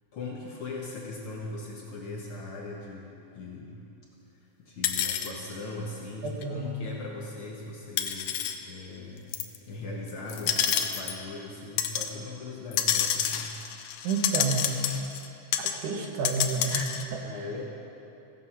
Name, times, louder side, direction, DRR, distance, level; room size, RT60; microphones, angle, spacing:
voice 1, 0.1-3.8 4.6-13.5 17.2-17.6, left 3 dB, 60° left, -3 dB, 1.5 m, -39 dB
sound 1, 4.8-5.3 6.4-6.5 8.0-8.6 9.3-9.6 10.3-11.2 11.8-12.1 12.7-15.3 15.5-15.8 16.0-17.0, left 10 dB, 75° left, 1.7 m, -28 dB
voice 2, 6.2-6.9 14.0-14.7 15.6-17.2, right 4 dB, 90° right, 2 dB, 2.6 m, -30 dB
16.0 x 7.1 x 5.7 m, 2.8 s
omnidirectional pair, 3.4 m